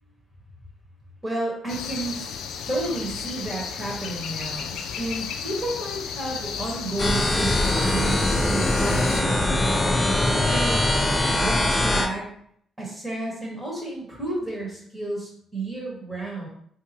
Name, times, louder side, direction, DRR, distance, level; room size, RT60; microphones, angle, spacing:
voice 1, 1.2-2.3 2.7-10.1 10.5-10.9 11.4-12.3 12.8-16.5, right 2 dB, 20° right, -4 dB, 1.2 m, -31 dB
sound 1, 1.7-9.2, left 7 dB, 80° left, 0.3 m, -34 dB
sound 2, 7.0-12.1, left 1 dB, 20° left, 0.5 m, -22 dB
3.5 x 2.8 x 2.7 m, 0.65 s
cardioid pair, 90°, 0 cm